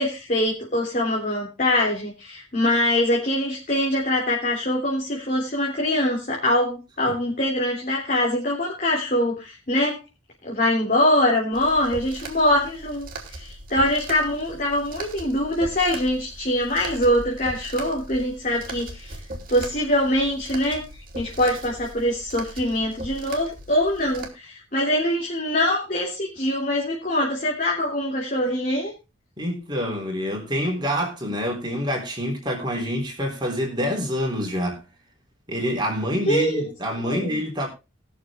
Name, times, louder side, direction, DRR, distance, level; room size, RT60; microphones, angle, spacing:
voice 1, 0.0-10.0 10.4-19.2 19.5-20.8 21.1-28.9 36.3-36.6 37.0-37.4, left 1 dB, 40° left, 3.4 m, -23 dB
sound 1, 11.5-24.3, right 2 dB, 45° right, 2.7 m, -39 dB
voice 2, 29.4-34.8 35.5-37.7, equal, 20° right, 3.5 m, -26 dB
19.5 x 6.9 x 3.6 m
head